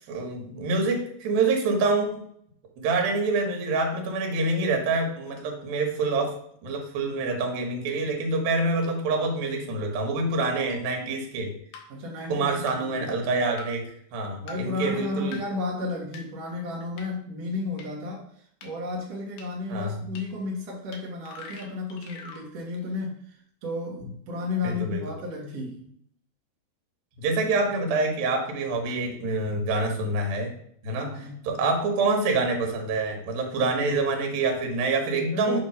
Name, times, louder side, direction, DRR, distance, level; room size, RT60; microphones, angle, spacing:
voice 1, 0.1-2.2 2.8-6.3 6.6-11.5 12.3-13.8 14.1-15.4 19.7-20.0 24.6-25.0 27.2-30.5 30.8-35.6, right 3 dB, 80° right, 2 dB, 2.9 m, -26 dB
sound 1, 10.7-10.8 11.7-11.8 12.7-12.8 13.6-13.7 14.5-14.6 15.3-15.4 16.1-16.2 17.0-17.1 17.8-17.9 18.6-18.7 19.4-19.5 20.2-20.3 20.9-21.0 21.2-22.4, left 4 dB, 80° left, 2.9 m, -41 dB
voice 2, 11.9-13.1 14.4-18.2 18.6-25.9 31.0-31.5 35.3-35.6, left 3 dB, 65° right, -3 dB, 1.7 m, -33 dB
6.9 x 3.0 x 5.4 m, 0.66 s
omnidirectional pair, 4.2 m